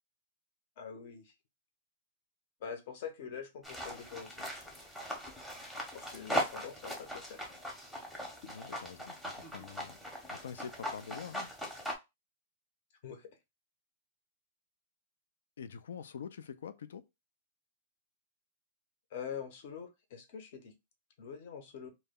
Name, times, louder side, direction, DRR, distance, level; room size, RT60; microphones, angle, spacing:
voice 1, 0.8-1.3 2.6-4.4 5.9-7.4 13.0-13.3 19.1-20.7 21.2-21.9, left 7 dB, 55° left, 0.7 m, -44 dB
sound 1, 3.6-11.9, equal, ahead, 0.7 m, -40 dB
voice 2, 8.5-10.0 10.3-11.5 15.6-17.0, left 7 dB, 85° left, 0.3 m, -45 dB
2.2 x 2.0 x 3.5 m
hypercardioid pair, 145°, 0 cm